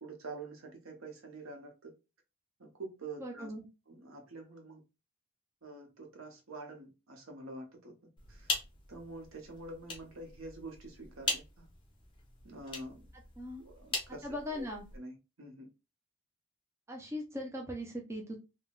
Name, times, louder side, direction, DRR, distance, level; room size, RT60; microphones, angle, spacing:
voice 1, 0.0-1.9 2.6-3.5 3.9-4.8 5.6-7.9 8.3-8.6 8.9-11.7 12.4-13.1 13.6-14.7 14.9-15.7, right 2 dB, 70° right, 0.8 m, -47 dB
voice 2, 3.2-3.6 13.4-13.6 14.2-14.9 16.9-18.4, left 1 dB, 15° right, 0.5 m, -39 dB
sound 1, 8.2-15.0, left 3 dB, 25° left, 0.7 m, -41 dB
3.4 x 2.2 x 2.3 m
head